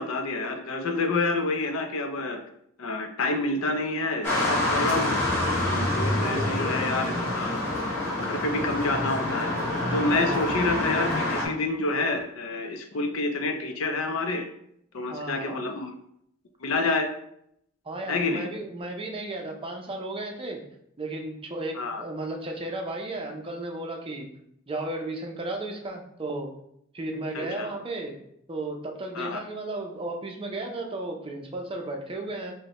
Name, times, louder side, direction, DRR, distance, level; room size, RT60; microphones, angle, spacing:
voice 1, 0.0-2.4 2.8-5.2 5.6-7.7 8.2-9.5 9.9-14.5 14.9-15.9 16.6-17.1 18.1-18.5 21.8-22.0 27.3-27.7 29.1-29.4, left 3 dB, 70° left, 5 dB, 0.5 m, -28 dB
sound 1, 4.2-11.4, left 1 dB, 10° left, 1.2 m, -27 dB
voice 2, 6.2-6.6 10.2-10.6 15.1-15.6 17.8-20.6 21.0-24.3 24.7-26.5 26.9-28.1 28.5-32.5, right 2 dB, 25° right, 2 dB, 0.5 m, -34 dB
5.3 x 2.1 x 2.9 m, 0.72 s
head